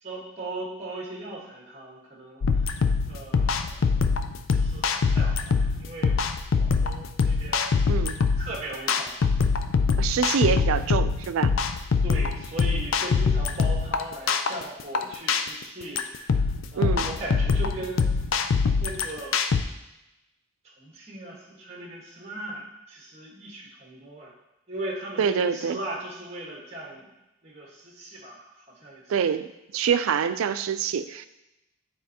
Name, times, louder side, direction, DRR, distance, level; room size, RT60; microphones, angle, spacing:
voice 1, 0.0-4.0 4.5-6.2 6.6-7.8 8.3-9.3 12.0-16.4 16.7-18.0 18.8-19.3 20.6-24.3 24.7-27.1 27.4-29.1, right 1 dB, 30° right, -3 dB, 1.3 m, -38 dB
sound 1, 2.4-19.6, left 5 dB, 70° left, 0.4 m, -24 dB
voice 2, 10.0-11.5 16.8-17.1 25.2-25.8 29.1-29.5 29.7-31.3, right 7 dB, 80° right, 12 dB, 0.4 m, -25 dB
9.6 x 4.3 x 2.8 m, 0.95 s
head